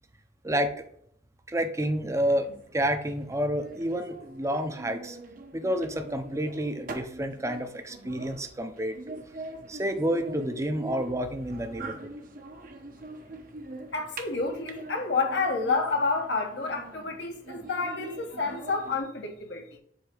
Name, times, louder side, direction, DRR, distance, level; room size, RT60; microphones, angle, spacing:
voice 1, 1.5-2.5 2.7-5.2 5.5-9.2 9.7-12.1, equal, 15° right, 0.6 m, -29 dB
sound 1, 2.3-19.0, right 2 dB, 50° right, 0.9 m, -43 dB
voice 2, 13.9-19.8, left 4 dB, 70° left, 1.0 m, -29 dB
7.7 x 2.8 x 5.0 m
head